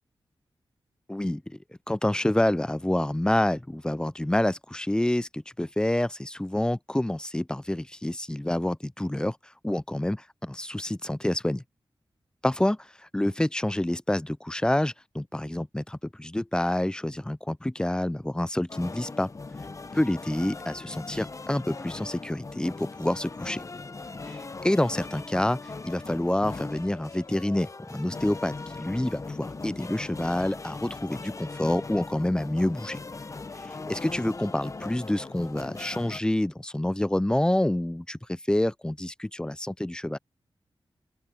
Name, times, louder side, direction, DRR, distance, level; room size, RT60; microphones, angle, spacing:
voice 1, 1.1-1.6 1.9-9.4 9.6-11.6 12.4-12.9 13.1-19.3 19.9-23.6 24.6-33.0 33.6-40.2, left 1 dB, 10° left, 0.5 m, -28 dB
sound 1, 18.7-36.2, left 3 dB, 35° left, 0.9 m, -39 dB
open air
cardioid pair, 65°, 9 cm